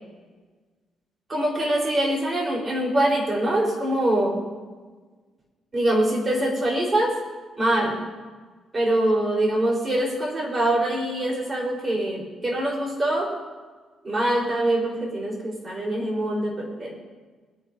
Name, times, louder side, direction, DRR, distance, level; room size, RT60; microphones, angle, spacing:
voice 1, 1.3-4.4 5.7-7.1 7.6-8.0 8.7-13.3 14.0-17.0, right 1 dB, 30° right, -2 dB, 4.2 m, -24 dB
21.5 x 9.3 x 2.7 m, 1.4 s
cardioid pair, 90°, 0 cm